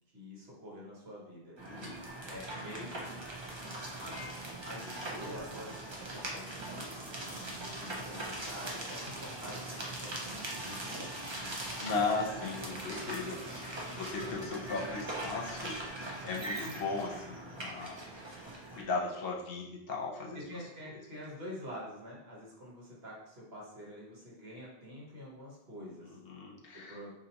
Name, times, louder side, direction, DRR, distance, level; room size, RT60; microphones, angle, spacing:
voice 1, 0.1-1.6 2.2-3.2 4.0-4.3 4.6-11.1 12.3-12.9 20.3-26.2 26.7-27.1, equal, 70° right, -4 dB, 1.3 m, -47 dB
sound 1, 1.6-18.8, right 1 dB, 35° right, 0.6 m, -41 dB
voice 2, 1.7-2.0 11.8-15.8 16.2-18.0 18.7-20.4 26.2-27.0, left 4 dB, 65° left, -3 dB, 0.9 m, -36 dB
4.0 x 2.7 x 2.8 m, 0.91 s
omnidirectional pair, 1.1 m